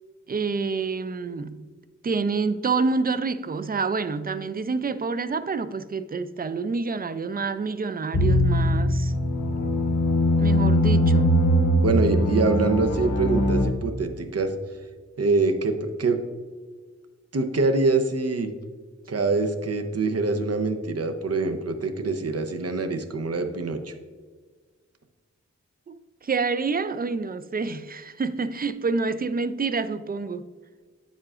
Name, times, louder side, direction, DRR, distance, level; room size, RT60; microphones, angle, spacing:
voice 1, 0.3-1.6 2.0-9.1 10.4-11.3 25.9-30.4, right 4 dB, 30° right, 0.4 m, -27 dB
sound 1, 8.1-13.6, equal, 85° left, 0.8 m, -21 dB
voice 2, 11.8-14.5 15.2-16.2 17.3-18.5 19.1-23.9, right 3 dB, 55° right, 0.7 m, -24 dB
8.7 x 7.4 x 2.4 m
wide cardioid pair, 85°, 29 cm